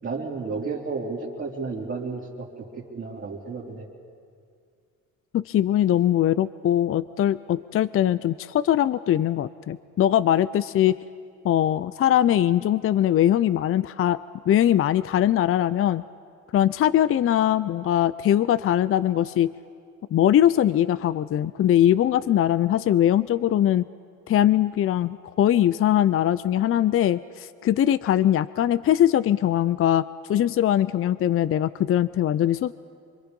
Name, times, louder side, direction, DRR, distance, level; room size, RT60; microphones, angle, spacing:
voice 1, 0.0-2.5 2.7-3.9, right 4 dB, 40° right, -7 dB, 3.5 m, -32 dB
voice 2, 5.3-11.0 11.4-14.2 14.5-16.0 16.5-19.5 20.1-23.8 24.3-30.0 30.3-32.7, left 11 dB, 50° left, 16 dB, 0.5 m, -21 dB
26.0 x 23.5 x 5.3 m, 2.3 s
cardioid pair, 90°, 30 cm